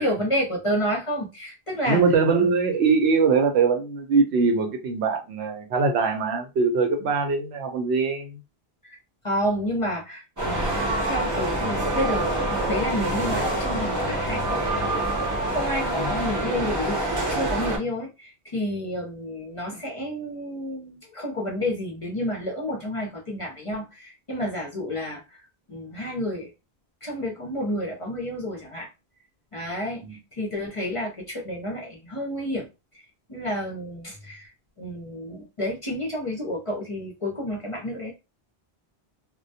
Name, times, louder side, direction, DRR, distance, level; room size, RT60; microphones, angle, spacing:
voice 1, 0.0-2.0 2.4-2.5 8.8-9.0 9.2-10.8 11.0-12.3 12.5-17.0 17.3-25.4 25.7-26.5 27.0-28.9 29.5-32.7 32.9-34.5 34.8-38.1, equal, 40° left, 0.6 m, -30 dB
voice 2, 1.9-8.4 30.0-30.2, right 4 dB, 80° right, 0.9 m, -22 dB
sound 1, 10.4-17.8, right 1 dB, 20° right, 0.7 m, -26 dB
2.1 x 2.1 x 2.7 m
omnidirectional pair, 1.1 m